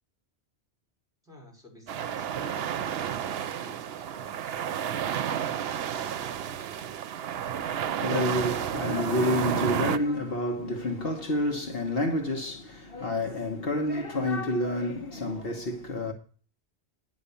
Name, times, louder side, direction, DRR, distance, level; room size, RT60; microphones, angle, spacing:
voice 1, 1.2-6.7, left 2 dB, 5° right, 5.3 m, -52 dB
sound 1, 1.9-10.0, right 9 dB, 70° right, 0.8 m, -31 dB
voice 2, 7.5-16.1, left 1 dB, 60° left, 1.4 m, -29 dB
10.0 x 6.2 x 6.9 m
omnidirectional pair, 1.1 m